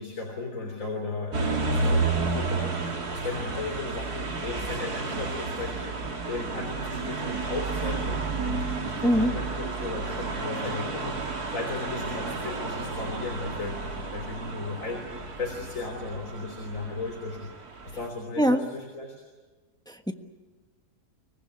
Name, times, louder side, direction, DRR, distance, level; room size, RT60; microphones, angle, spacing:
voice 1, 0.0-17.5 17.8-19.2, left 3 dB, 55° left, 2 dB, 3.9 m, -36 dB
sound 1, 1.3-18.1, right 3 dB, 75° right, 2.8 m, -31 dB
voice 2, 9.0-9.3 18.4-18.6 19.9-20.1, equal, 5° left, 6 dB, 1.1 m, -22 dB
25.0 x 19.5 x 9.8 m, 1.3 s
omnidirectional pair, 1.7 m